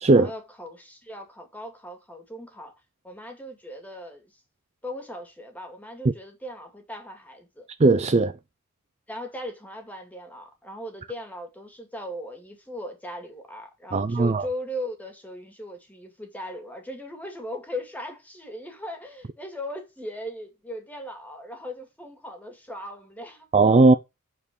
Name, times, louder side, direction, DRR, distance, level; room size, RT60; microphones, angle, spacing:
voice 1, 0.1-2.7 3.0-4.3 4.8-7.7 9.1-23.5, equal, 5° left, 2.4 m, -38 dB
voice 2, 7.8-8.3 13.9-14.5 23.5-23.9, right 3 dB, 30° right, 0.5 m, -17 dB
8.3 x 4.6 x 6.3 m
head